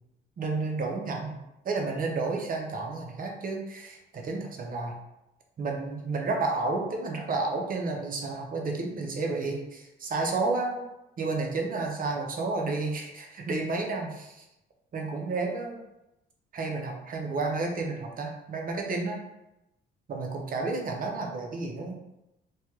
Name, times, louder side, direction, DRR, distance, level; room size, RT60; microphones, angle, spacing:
voice 1, 0.4-1.4 1.6-5.0 5.6-10.8 11.2-14.4 14.9-15.8 16.5-19.2 20.1-22.0, right 3 dB, 45° right, 1 dB, 0.7 m, -31 dB
3.3 x 2.2 x 2.9 m, 0.91 s
cardioid pair, 90°, 20 cm